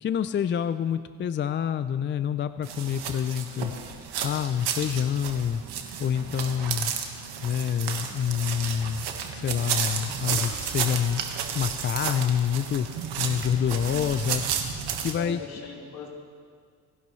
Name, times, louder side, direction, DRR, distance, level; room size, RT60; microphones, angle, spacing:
voice 1, 0.0-3.7 4.2-5.6 6.0-6.9 7.4-9.1 9.3-11.2 11.5-12.9 13.2-14.4 15.0-15.4, left 8 dB, 30° left, 12 dB, 0.4 m, -27 dB
sound 1, 2.6-15.1, right 7 dB, 85° right, 1.5 m, -32 dB
voice 2, 15.1-16.1, left 4 dB, 65° left, -2 dB, 3.1 m, -39 dB
27.5 x 11.5 x 3.2 m, 2.1 s
cardioid pair, 100°, 39 cm